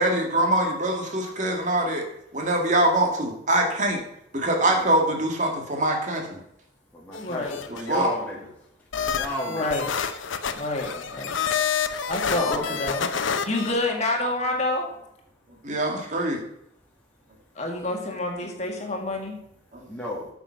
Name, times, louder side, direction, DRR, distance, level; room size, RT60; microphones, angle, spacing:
voice 1, 0.0-2.0 2.3-4.0 4.3-6.4 7.9-8.1 15.6-16.4 19.7-19.8, right 1 dB, 40° right, 2 dB, 1.9 m, -23 dB
voice 2, 4.6-4.9 6.9-8.5 9.1-9.8 12.3-13.0 19.9-20.3, left 1 dB, 10° left, -5 dB, 2.0 m, -33 dB
sound 1, 7.1-8.1 8.9-13.7, left 7 dB, 85° left, 0.8 m, -28 dB
voice 3, 7.2-7.6 9.5-9.9 10.6-11.4 12.1-13.1 13.5-14.9 17.6-19.4, left 2 dB, 35° left, 1 dB, 2.0 m, -28 dB
8.8 x 7.4 x 5.7 m, 0.78 s
head